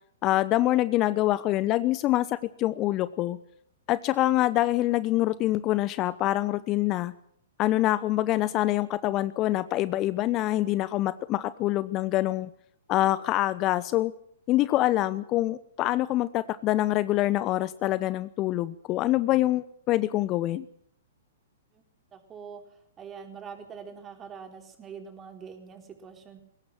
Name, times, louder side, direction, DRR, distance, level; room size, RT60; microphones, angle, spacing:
voice 1, 0.2-3.4 3.9-7.1 7.6-12.5 12.9-14.1 14.5-20.6, left 15 dB, 30° left, 16 dB, 0.9 m, -25 dB
voice 2, 22.1-22.6 23.0-26.4, right 6 dB, 20° right, 5 dB, 4.2 m, -44 dB
21.5 x 18.0 x 7.6 m, 0.69 s
figure-of-eight pair, 115°, 0 cm